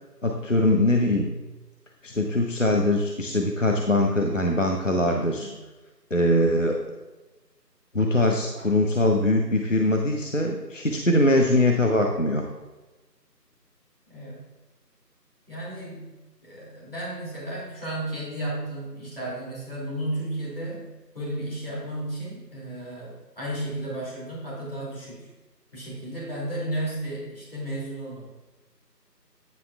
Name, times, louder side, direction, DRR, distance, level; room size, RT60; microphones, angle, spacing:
voice 1, 0.2-1.3 2.0-5.5 6.1-6.8 7.9-12.4, left 1 dB, 50° left, 1 dB, 0.7 m, -22 dB
voice 2, 5.1-5.6 14.1-14.4 15.5-16.1 16.4-25.3 25.7-28.3, right 1 dB, 35° left, -6 dB, 2.5 m, -33 dB
9.8 x 9.2 x 2.3 m, 1.1 s
figure-of-eight pair, 175°, 50 cm